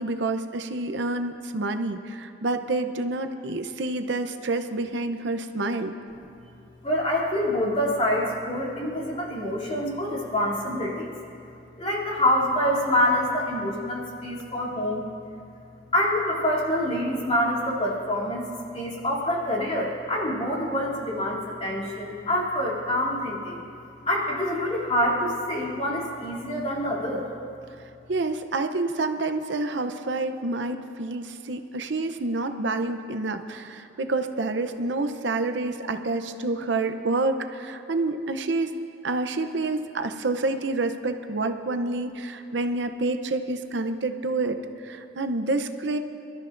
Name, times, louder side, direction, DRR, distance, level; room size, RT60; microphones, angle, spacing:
voice 1, 0.0-5.9 28.1-38.7 39.0-44.6 44.8-46.0, right 2 dB, 75° right, 8 dB, 0.7 m, -28 dB
voice 2, 6.8-11.1 11.8-15.1 15.9-18.4 18.7-23.6 24.1-27.2, left 1 dB, 35° left, -5 dB, 2.8 m, -26 dB
26.0 x 13.0 x 2.6 m, 2.6 s
head